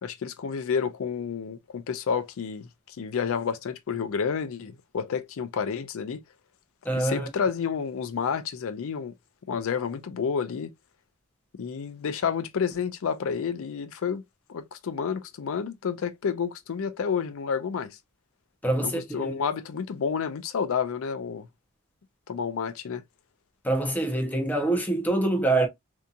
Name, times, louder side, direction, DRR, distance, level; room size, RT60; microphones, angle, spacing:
voice 1, 0.0-6.2 6.9-9.1 9.5-10.7 11.6-14.2 14.5-18.0 18.8-21.5 22.3-23.0, left 6 dB, 65° left, 0.4 m, -30 dB
voice 2, 6.8-7.3 18.6-19.4 23.6-25.7, right 2 dB, 10° left, 0.6 m, -25 dB
2.7 x 2.6 x 2.2 m
head